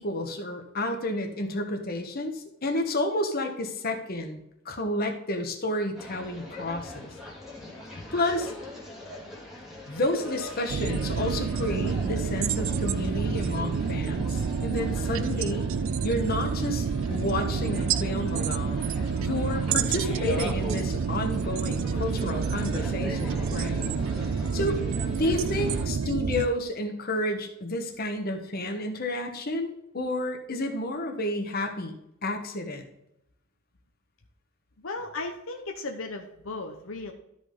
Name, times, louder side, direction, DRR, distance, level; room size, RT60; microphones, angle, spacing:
voice 1, 0.0-7.1 8.1-8.5 9.9-15.7 16.0-18.9 19.2-23.9 24.5-24.8 25.2-32.0 32.2-32.8, left 1 dB, 50° left, 3 dB, 1.4 m, -30 dB
sound 1, 5.9-25.9, left 1 dB, ahead, 2.2 m, -41 dB
sound 2, 10.7-26.5, right 6 dB, 70° right, 0.4 m, -28 dB
voice 2, 34.8-37.1, left 3 dB, 75° left, 3 dB, 1.0 m, -36 dB
13.0 x 5.4 x 3.9 m, 0.81 s
head